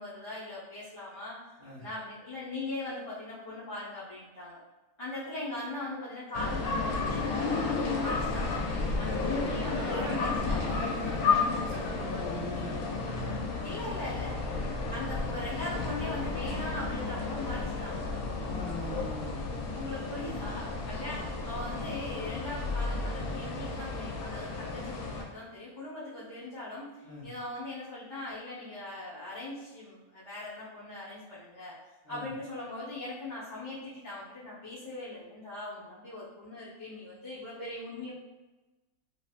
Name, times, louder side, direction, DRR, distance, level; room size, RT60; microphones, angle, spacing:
voice 1, 0.0-1.4 1.8-4.6 5.0-8.5 9.0-10.6 13.6-14.4 14.9-18.0 19.7-31.7 32.1-38.1, left 2 dB, 20° left, -13 dB, 0.9 m, -40 dB
sound 1, 6.3-25.2, left 3 dB, 85° left, 1.1 m, -32 dB
voice 2, 9.0-10.4 10.6-12.8 14.5-14.7 18.5-19.4 27.0-27.3 32.0-32.3, left 1 dB, 40° left, -10 dB, 1.8 m, -40 dB
3.2 x 2.6 x 2.4 m, 1.1 s
omnidirectional pair, 1.5 m